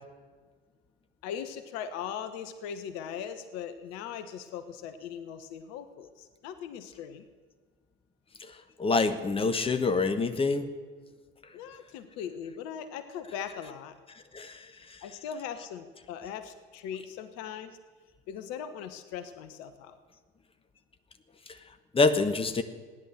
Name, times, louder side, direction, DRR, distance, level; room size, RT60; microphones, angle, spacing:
voice 1, 1.2-7.2 11.5-14.0 15.0-17.8 18.3-20.0, left 8 dB, 60° left, 11 dB, 1.2 m, -39 dB
voice 2, 8.8-10.7 14.3-14.6 21.9-22.6, left 3 dB, 20° left, 9 dB, 1.2 m, -25 dB
16.0 x 10.5 x 7.7 m, 1.4 s
figure-of-eight pair, 65°, 29 cm